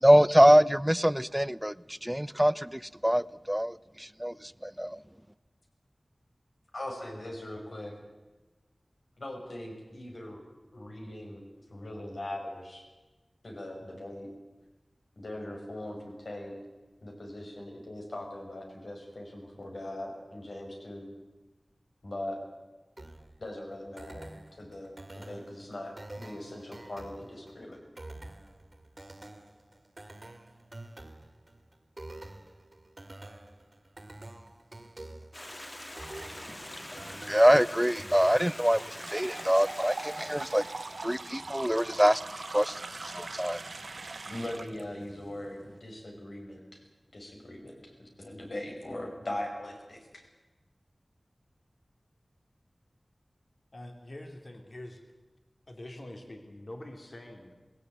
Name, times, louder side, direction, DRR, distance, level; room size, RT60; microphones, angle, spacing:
voice 1, 0.0-5.0 37.3-40.7 41.0-43.6, equal, 10° right, 18 dB, 0.6 m, -24 dB
voice 2, 6.7-7.9 9.2-10.4 10.7-11.4 11.7-12.9 13.4-14.3 15.2-16.5 17.0-21.1 22.0-22.4 23.4-27.8 44.2-46.8 47.1-50.2, left 1 dB, 75° left, 1 dB, 5.6 m, -40 dB
sound 1, 23.0-39.0, right 2 dB, 40° right, 2.0 m, -48 dB
Stream, 35.3-41.4, left 1 dB, 25° left, 1.7 m, -44 dB
sound 2, 38.9-44.8, right 3 dB, 75° right, 0.6 m, -41 dB
voice 3, 53.7-55.0 55.7-57.5, left 1 dB, 55° left, 4 dB, 2.9 m, -45 dB
19.5 x 16.5 x 9.1 m, 1.2 s
wide cardioid pair, 55°, 0 cm